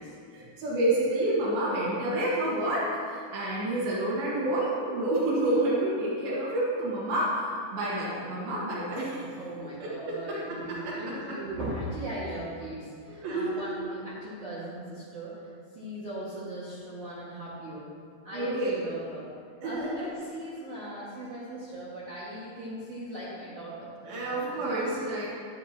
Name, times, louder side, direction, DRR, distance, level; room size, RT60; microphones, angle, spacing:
voice 1, 0.3-9.3 9.8-9.9 10.5-11.4 13.1-13.7 18.3-18.8 19.6-20.1 24.0-25.3, right 1 dB, 85° right, -8 dB, 3.6 m, -29 dB
voice 2, 9.4-17.9 18.2-19.3 19.6-24.8, right 1 dB, 50° right, -10 dB, 2.3 m, -39 dB
12.5 x 10.5 x 2.8 m, 2.2 s
omnidirectional pair, 4.2 m